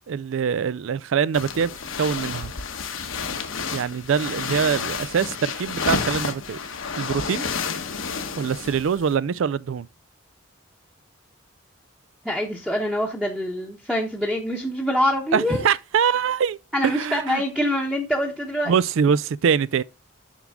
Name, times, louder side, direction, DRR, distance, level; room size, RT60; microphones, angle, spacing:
voice 1, 0.1-1.7 2.0-2.5 3.7-6.6 7.0-7.5 8.4-9.9 15.3-16.6 16.8-17.4 18.7-19.8, right 7 dB, 70° right, 0.4 m, -23 dB
sound 1, 1.3-9.1, left 5 dB, 75° left, 1.1 m, -30 dB
voice 2, 12.2-15.6 16.7-18.7, equal, 5° right, 0.9 m, -25 dB
7.3 x 6.1 x 3.5 m
head